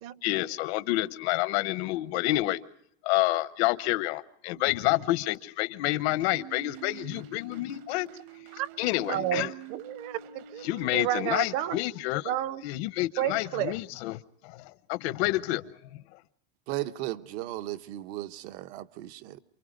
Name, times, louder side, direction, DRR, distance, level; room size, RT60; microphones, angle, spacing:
voice 1, 0.2-2.6 3.0-8.1 8.8-9.5 10.6-12.3 12.6-16.2, left 18 dB, 75° left, 1.0 m, -29 dB
sound 1, 6.3-11.5, right 10 dB, 60° right, 1.4 m, -47 dB
voice 2, 9.1-11.8 12.3-12.6 13.2-13.7, right 12 dB, 45° right, 0.9 m, -31 dB
voice 3, 16.7-19.4, right 15 dB, 80° right, 1.2 m, -36 dB
28.5 x 23.5 x 5.2 m
cardioid pair, 180°, 32 cm